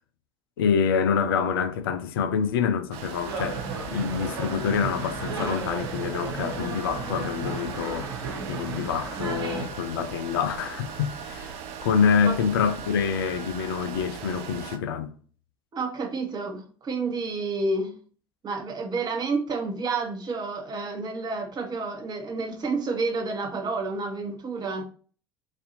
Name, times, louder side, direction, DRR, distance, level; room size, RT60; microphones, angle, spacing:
voice 1, 0.6-8.1 8.5-15.1, left 6 dB, 70° left, 0.5 m, -26 dB
sound 1, 2.9-14.8, right 7 dB, 55° right, 0.5 m, -39 dB
sound 2, 3.3-9.7, right 4 dB, 70° right, 1.2 m, -34 dB
voice 2, 15.7-18.0 18.4-24.9, right 3 dB, 35° right, 1.0 m, -30 dB
4.2 x 2.6 x 2.6 m
figure-of-eight pair, 65°, 13 cm